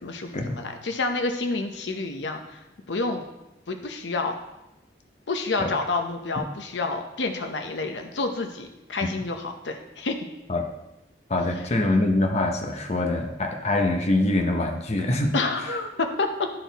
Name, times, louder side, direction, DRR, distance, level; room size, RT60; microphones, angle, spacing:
voice 1, 0.0-2.6 2.9-3.2 3.7-4.4 5.3-10.2 15.3-16.5, left 3 dB, 85° left, 5 dB, 0.8 m, -29 dB
voice 2, 11.3-15.3, left 2 dB, 40° left, 3 dB, 0.8 m, -24 dB
12.0 x 4.2 x 4.0 m, 0.94 s
head